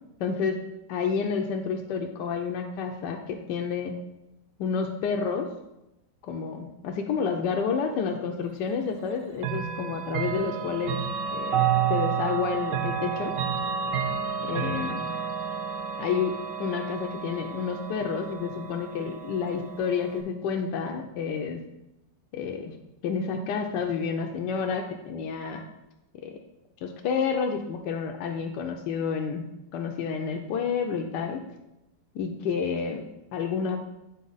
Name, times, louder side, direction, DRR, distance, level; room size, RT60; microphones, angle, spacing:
voice 1, 0.2-0.6 0.9-3.9 4.6-5.5 6.2-11.0 11.3-13.3 14.4-15.0 16.0-21.6 22.3-22.7 23.0-25.6 26.2-26.4 26.8-29.4 29.7-31.4 32.1-33.0 33.3-33.8, left 6 dB, 75° left, 2 dB, 1.2 m, -29 dB
Chime / Clock, 9.4-20.2, right 7 dB, 70° right, 0.7 m, -30 dB
8.4 x 4.1 x 3.9 m, 0.91 s
omnidirectional pair, 2.0 m